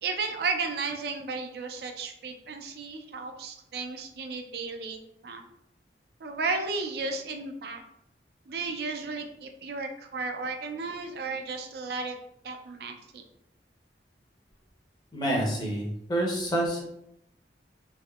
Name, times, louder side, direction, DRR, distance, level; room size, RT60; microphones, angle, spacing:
voice 1, 0.0-5.4 6.2-7.8 8.5-12.2 12.4-13.2, right 4 dB, 60° right, 5 dB, 0.4 m, -34 dB
voice 2, 15.1-16.9, right 1 dB, 25° left, -2 dB, 0.8 m, -28 dB
3.4 x 3.1 x 2.3 m, 0.79 s
head